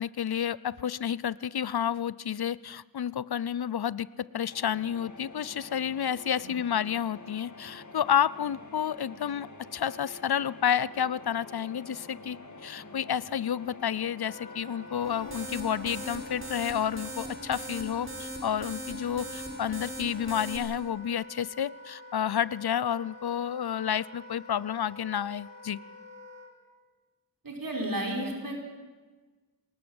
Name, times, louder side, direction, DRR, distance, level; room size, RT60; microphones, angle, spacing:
voice 1, 0.0-25.8, left 9 dB, 70° left, 20 dB, 0.7 m, -30 dB
sound 1, 4.5-18.3, left 2 dB, 45° left, 2.5 m, -48 dB
Wind instrument woodwind instrument, 14.2-26.5, left 1 dB, 85° left, 4.0 m, -48 dB
sound 2, 15.0-20.6, right 1 dB, 30° right, 5.4 m, -40 dB
voice 2, 27.4-28.6, right 1 dB, 55° right, 1 dB, 4.9 m, -32 dB
25.0 x 20.0 x 7.9 m, 1.3 s
wide cardioid pair, 70°, 39 cm